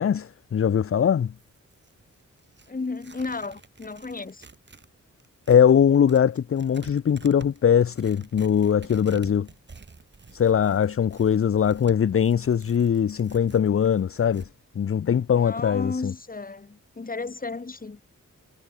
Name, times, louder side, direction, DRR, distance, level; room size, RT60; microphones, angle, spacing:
voice 1, 0.0-1.3 5.5-9.5 10.3-14.5 14.8-16.1, left 8 dB, 45° left, 0.6 m, -21 dB
Tearing, 1.2-4.9 5.2-14.5, right 4 dB, 35° right, 1.6 m, -49 dB
voice 2, 2.7-4.5 15.3-18.0, left 3 dB, 30° left, 1.3 m, -33 dB
wide cardioid pair, 95°, 31 cm